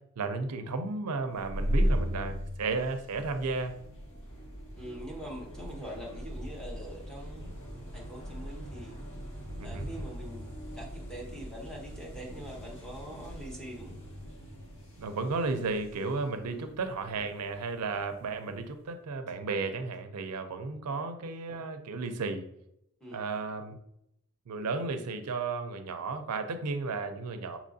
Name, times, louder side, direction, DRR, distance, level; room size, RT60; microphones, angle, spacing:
voice 1, 0.2-3.8 9.6-9.9 15.0-22.4 23.1-23.8 24.5-27.6, right 3 dB, 80° right, 8 dB, 0.5 m, -33 dB
sound 1, 1.3-18.7, equal, 60° left, 1.8 m, -38 dB
voice 2, 4.8-7.5 7.9-9.0 9.6-14.0 16.5-16.7 20.9-21.0 23.0-23.3, right 1 dB, 5° left, -2 dB, 1.0 m, -44 dB
6.5 x 2.9 x 2.6 m, 0.76 s
head